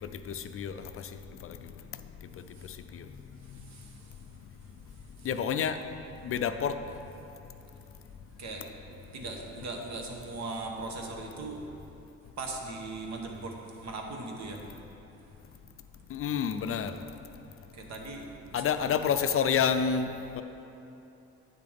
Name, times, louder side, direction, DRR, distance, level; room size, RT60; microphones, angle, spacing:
voice 1, 0.0-1.1 1.4-1.6 2.6-3.1 5.2-5.8 6.2-6.8 16.1-17.0 18.5-20.1 20.4-20.5, left 7 dB, 50° left, 9 dB, 0.4 m, -29 dB
voice 2, 3.4-4.3 4.9-5.3 8.4-11.6 12.2-14.6 17.7-19.0, right 3 dB, 65° right, 2 dB, 1.1 m, -40 dB
8.5 x 6.8 x 3.5 m, 2.9 s
cardioid pair, 90°, 30 cm